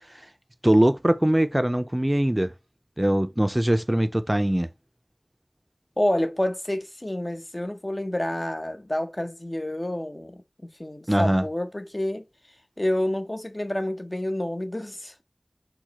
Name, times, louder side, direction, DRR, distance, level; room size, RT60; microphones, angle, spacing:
voice 1, 0.6-2.5 3.0-4.7 11.1-11.4, right 1 dB, 25° right, 0.4 m, -21 dB
voice 2, 6.0-10.4 10.8-12.3 12.8-15.2, left 1 dB, 40° left, 0.7 m, -28 dB
4.6 x 2.1 x 4.0 m
wide cardioid pair, 40°, 0 cm